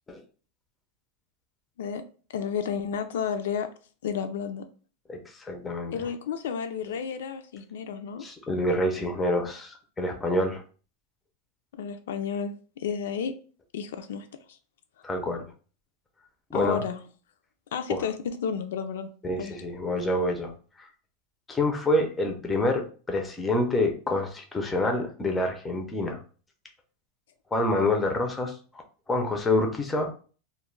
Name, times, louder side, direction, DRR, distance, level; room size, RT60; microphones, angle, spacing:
voice 1, 2.3-3.7 4.0-4.7 5.9-8.2 11.7-13.3 13.7-14.3 16.5-17.0 17.7-19.1 19.4-19.5, left 7 dB, 85° left, 0.3 m, -31 dB
voice 2, 5.1-6.1 8.2-10.6 15.0-15.5 16.5-16.8 17.9-18.0 19.2-20.5 20.8-20.9 21.5-26.2 27.5-30.1, left 1 dB, 10° left, 0.4 m, -27 dB
2.2 x 2.1 x 3.1 m
supercardioid pair, 160°, 0 cm